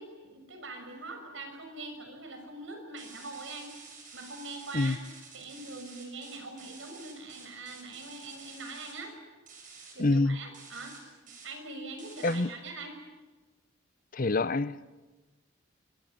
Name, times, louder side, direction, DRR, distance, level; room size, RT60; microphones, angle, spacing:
voice 1, 0.0-3.8 4.1-5.0 5.3-9.1 9.9-11.0 11.4-13.0, right 3 dB, 70° right, 6 dB, 6.3 m, -43 dB
sound 1, 3.0-8.9 9.5-9.9 10.5-11.0 11.3-11.5 12.0-12.4, right 5 dB, 40° right, 7.0 m, -50 dB
voice 2, 10.0-10.4 12.2-12.5 14.1-14.8, left 2 dB, 40° left, 16 dB, 0.8 m, -26 dB
25.0 x 24.0 x 9.3 m, 1.2 s
head